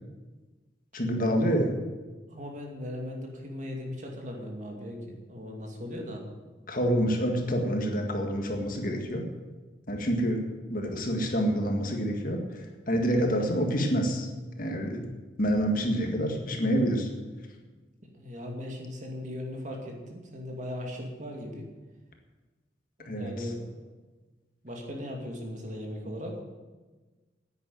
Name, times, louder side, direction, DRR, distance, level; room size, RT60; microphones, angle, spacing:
voice 1, 0.9-1.8 6.7-9.3 9.9-10.4 10.7-14.3 14.6-15.1 15.4-17.1 23.0-23.5, equal, 45° left, 3 dB, 1.9 m, -27 dB
voice 2, 2.3-6.3 18.1-21.7 23.0-23.9 24.6-26.4, left 1 dB, 40° right, 1 dB, 2.5 m, -38 dB
10.5 x 9.6 x 9.3 m, 1.3 s
head